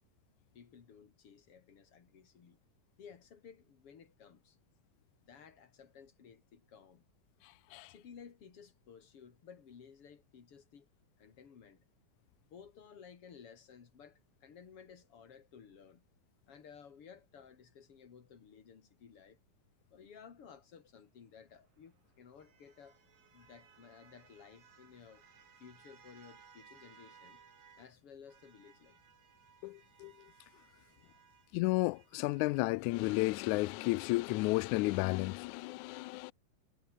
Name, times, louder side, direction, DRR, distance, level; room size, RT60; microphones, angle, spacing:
voice 1, 0.5-2.6 3.0-4.6 5.2-7.0 7.8-10.9 11.2-11.8 12.5-16.0 16.5-19.4 19.9-23.0 23.3-25.2 25.6-27.4 27.8-29.0, left 7 dB, 45° left, 3.2 m, -56 dB
sound 1, 21.3-28.0 28.3-33.6, right 7 dB, 75° right, 5.3 m, -63 dB
voice 2, 29.6-30.1 31.5-36.3, left 21 dB, 85° left, 1.7 m, -32 dB
omnidirectional pair, 4.0 m